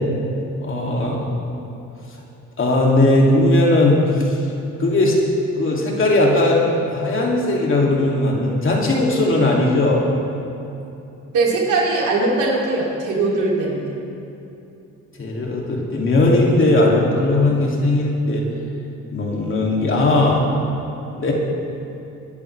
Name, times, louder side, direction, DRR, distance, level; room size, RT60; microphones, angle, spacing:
voice 1, 0.6-1.3 2.6-4.4 4.8-5.2 5.6-6.6 6.9-10.1 15.2-18.4 19.1-20.5 21.2-21.3, left 2 dB, 40° left, -2 dB, 2.6 m, -18 dB
voice 2, 11.3-13.9, right 3 dB, 80° right, -3 dB, 3.0 m, -20 dB
20.5 x 10.5 x 3.4 m, 2.8 s
cardioid pair, 90°, 30 cm